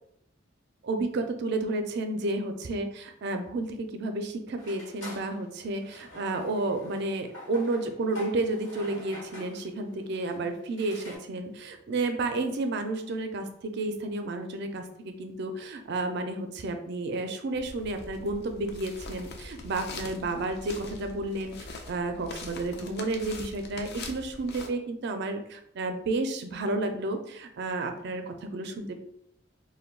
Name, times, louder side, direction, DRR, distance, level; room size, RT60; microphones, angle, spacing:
voice 1, 0.8-29.0, right 2 dB, 60° right, 6 dB, 0.4 m, -31 dB
sound 1, 4.6-11.2, left 1 dB, 90° left, 1.1 m, -46 dB
sound 2, 17.5-24.7, left 3 dB, 60° left, 0.4 m, -43 dB
2.2 x 2.2 x 3.6 m, 0.73 s
head